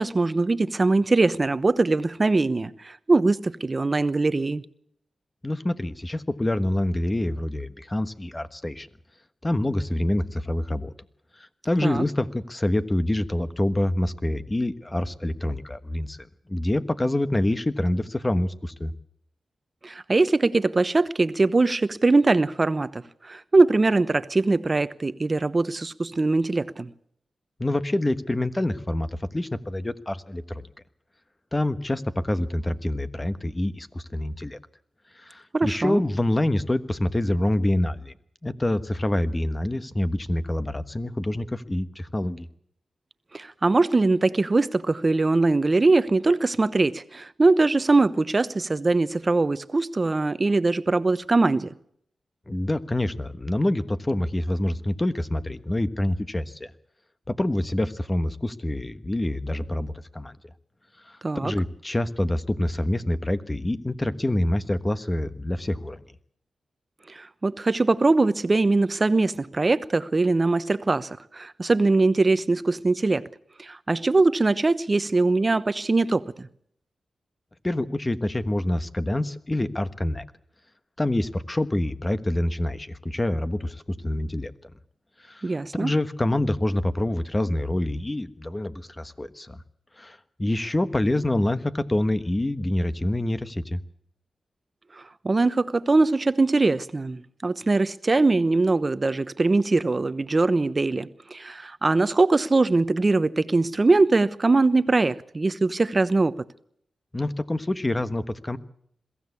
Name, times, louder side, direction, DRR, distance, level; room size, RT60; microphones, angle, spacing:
voice 1, 0.0-4.6 11.8-12.0 19.8-23.0 23.3-26.9 35.5-36.0 43.3-51.7 61.2-61.5 67.1-73.2 73.6-76.5 85.4-85.9 95.2-106.3, right 3 dB, 35° right, 1.0 m, -22 dB
voice 2, 5.4-8.9 9.4-10.9 11.6-16.2 16.5-18.9 27.6-30.7 31.5-34.6 35.2-38.1 38.4-42.5 52.5-56.7 57.3-60.3 61.1-66.0 77.6-80.2 81.0-84.7 85.2-85.4 85.8-89.6 90.0-93.8 107.1-108.6, left 1 dB, 20° left, 1.3 m, -26 dB
22.0 x 15.5 x 8.5 m
cardioid pair, 70°, 0 cm